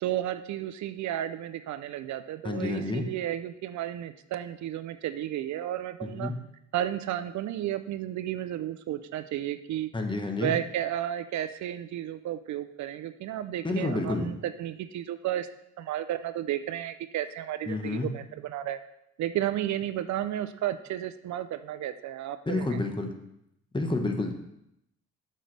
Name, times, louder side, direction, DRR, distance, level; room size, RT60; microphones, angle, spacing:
voice 1, 0.0-6.3 6.7-9.9 10.4-15.5 15.8-18.8 19.2-22.8, right 12 dB, 70° right, 11 dB, 0.5 m, -33 dB
voice 2, 2.4-3.0 6.1-6.3 9.9-10.5 13.6-14.3 17.7-18.1 22.5-23.1 23.7-24.3, left 2 dB, 15° left, 4 dB, 1.0 m, -29 dB
7.8 x 6.5 x 3.3 m, 0.81 s
cardioid pair, 90°, 30 cm